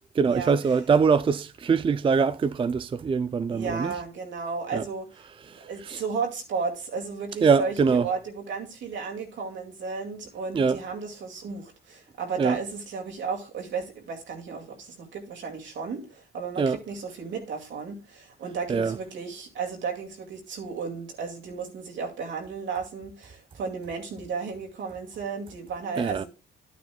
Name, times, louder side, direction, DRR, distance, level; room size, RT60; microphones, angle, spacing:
voice 1, 0.2-3.9 4.7-4.8 5.5-6.0 7.4-8.1 10.5-10.8 12.4-12.6 16.6-16.8 18.7-19.0 26.0-26.2, right 5 dB, 25° right, 0.4 m, -23 dB
voice 2, 3.5-5.2 5.6-26.3, right 5 dB, 70° right, 2.3 m, -34 dB
11.0 x 9.4 x 2.3 m
cardioid pair, 90°, 20 cm